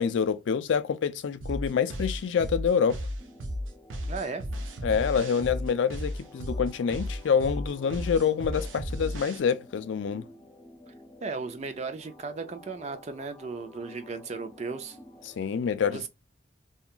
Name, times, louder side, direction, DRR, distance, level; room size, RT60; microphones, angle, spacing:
voice 1, 0.0-3.0 4.8-10.3 15.4-16.1, left 6 dB, 75° left, 0.4 m, -26 dB
sound 1, 1.4-9.4, equal, 85° right, 0.6 m, -34 dB
sound 2, 3.2-15.4, left 2 dB, 15° left, 0.9 m, -52 dB
voice 2, 4.1-4.5 10.9-11.0 11.2-15.0 15.9-16.1, right 4 dB, 35° right, 0.4 m, -36 dB
2.8 x 2.2 x 2.3 m
head